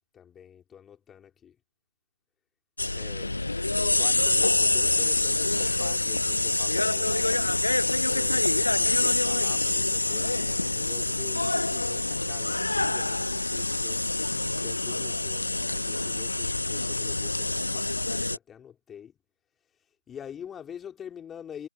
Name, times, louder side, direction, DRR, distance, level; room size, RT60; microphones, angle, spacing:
voice 1, 0.1-1.6 2.9-3.5 3.8-7.5 8.1-14.0 14.5-19.2 19.6-21.7, left 8 dB, 5° left, 3.9 m, -46 dB
sound 1, 2.8-18.4, left 2 dB, 75° left, 0.5 m, -26 dB
figure-of-eight pair, 155°, 0 cm